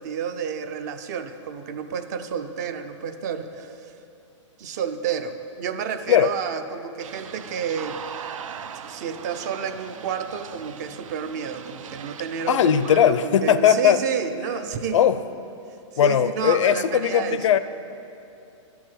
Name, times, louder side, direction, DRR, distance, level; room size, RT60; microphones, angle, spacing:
voice 1, 0.0-3.9 4.6-8.0 8.8-15.1 16.0-17.6, right 7 dB, 35° right, 9 dB, 0.4 m, -30 dB
sound 1, 7.0-13.1, right 8 dB, 90° right, 0.5 m, -40 dB
voice 2, 12.5-14.0 14.9-15.2 16.0-17.6, left 9 dB, 75° left, 13 dB, 0.5 m, -19 dB
11.0 x 4.7 x 7.3 m, 2.7 s
hypercardioid pair, 165°, 16 cm